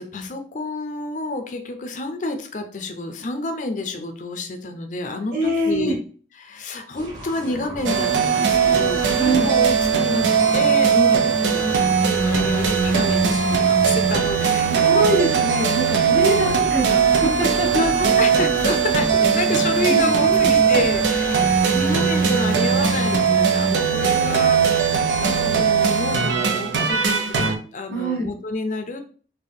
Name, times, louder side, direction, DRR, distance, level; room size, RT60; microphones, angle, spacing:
voice 1, 0.0-5.9 6.4-15.0 16.3-16.5 17.7-27.4 27.7-29.0, left 2 dB, 45° left, 6 dB, 0.5 m, -29 dB
voice 2, 5.3-5.9 9.2-9.5 14.7-17.9 19.2-19.3 19.9-20.5 27.9-28.3, right 1 dB, 50° right, -7 dB, 1.0 m, -24 dB
sound 1, 6.9-25.7, equal, 25° right, 0.9 m, -37 dB
sound 2, 7.9-27.6, right 6 dB, 90° right, 0.6 m, -19 dB
3.5 x 2.2 x 3.7 m, 0.40 s
head